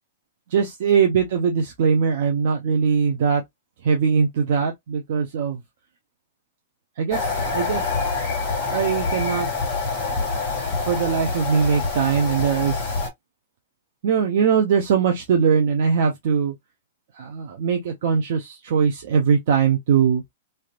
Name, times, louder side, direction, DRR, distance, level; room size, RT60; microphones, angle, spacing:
voice 1, 0.5-3.4 3.8-5.6 7.0-7.9 8.5-9.5 10.2-10.3 10.9-13.0 14.0-16.5 17.1-20.2, right 6 dB, 45° right, 0.8 m, -21 dB
sound 1, 7.1-13.1, left 4 dB, 25° left, 2.0 m, -26 dB
3.4 x 2.7 x 2.4 m
hypercardioid pair, 175°, 0 cm